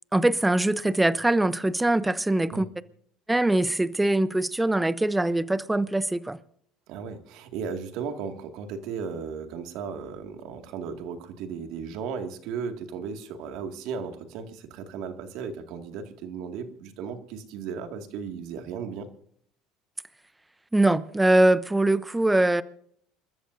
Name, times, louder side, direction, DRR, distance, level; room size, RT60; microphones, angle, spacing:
voice 1, 0.1-2.7 3.3-6.4 20.7-22.6, right 1 dB, 10° right, 0.8 m, -22 dB
voice 2, 6.9-19.1, right 6 dB, 70° right, 2.1 m, -35 dB
28.5 x 13.5 x 2.7 m
supercardioid pair, 85°, 0 cm